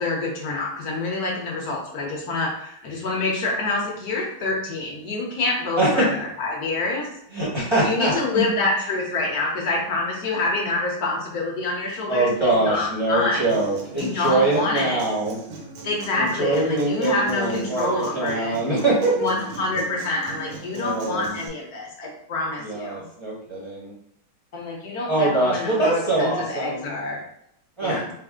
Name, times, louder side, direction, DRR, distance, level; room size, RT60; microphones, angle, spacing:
voice 1, 0.0-7.1 7.8-13.5 13.9-15.1 15.8-18.6 19.2-23.0 24.5-27.2 27.8-28.1, left 2 dB, 60° left, -1 dB, 1.2 m, -27 dB
voice 2, 5.8-6.1 7.3-8.5 12.1-15.4 16.2-19.3 20.7-21.3 22.6-23.9 25.1-26.9 27.8-28.0, right 2 dB, 20° right, -8 dB, 0.8 m, -23 dB
Human voice / Acoustic guitar, 13.5-21.5, right 3 dB, 75° right, 1.5 m, -40 dB
4.2 x 2.0 x 3.6 m, 0.75 s
omnidirectional pair, 2.2 m